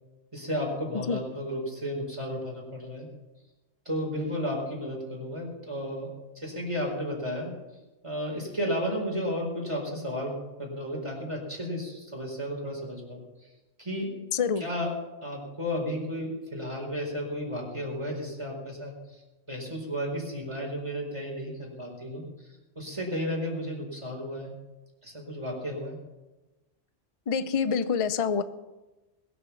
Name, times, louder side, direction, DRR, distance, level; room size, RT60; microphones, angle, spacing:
voice 1, 0.3-3.1 3.8-7.5 8.0-13.5 13.8-14.1 14.6-14.9 15.2-24.5 25.0-26.0, equal, 25° right, -1 dB, 4.6 m, -33 dB
voice 2, 14.3-14.6 27.3-28.4, left 6 dB, 35° left, 12 dB, 0.6 m, -26 dB
21.5 x 7.1 x 7.0 m, 1.1 s
omnidirectional pair, 1.2 m